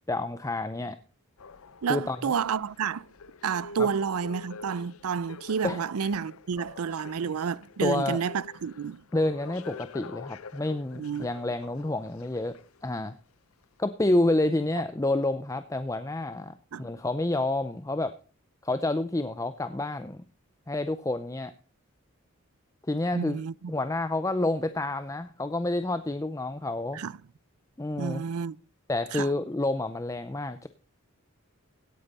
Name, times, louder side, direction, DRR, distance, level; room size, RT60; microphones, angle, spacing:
voice 1, 0.1-1.0 1.9-2.2 3.8-3.9 5.6-5.8 7.8-8.2 9.1-13.1 13.8-18.2 18.6-20.2 20.7-21.5 22.9-23.4 23.7-27.0 27.8-28.2 28.9-30.7, left 2 dB, 15° left, 0.5 m, -29 dB
sound 1, 1.4-13.0 13.6-13.7, left 4 dB, 75° left, 0.6 m, -47 dB
voice 2, 1.8-3.0 3.4-9.0 10.9-11.3 16.7-16.9 23.1-23.7 26.9-27.2 28.0-28.6 29.1-29.3, right 6 dB, 85° right, 0.5 m, -30 dB
17.0 x 8.8 x 4.2 m
head